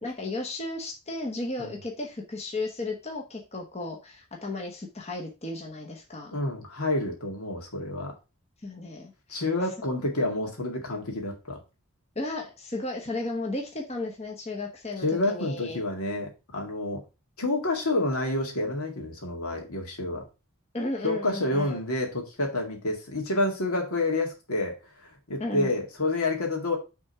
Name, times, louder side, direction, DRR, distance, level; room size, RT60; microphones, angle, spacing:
voice 1, 0.0-6.3 8.6-9.4 12.1-15.8 20.7-21.8 25.4-25.7, left 2 dB, 30° left, 1 dB, 1.0 m, -34 dB
voice 2, 6.3-8.1 9.3-11.6 15.0-17.0 17.4-20.2 21.0-24.8 25.0-26.8, left 2 dB, 80° left, 2 dB, 2.0 m, -28 dB
6.3 x 3.6 x 5.6 m, 0.29 s
head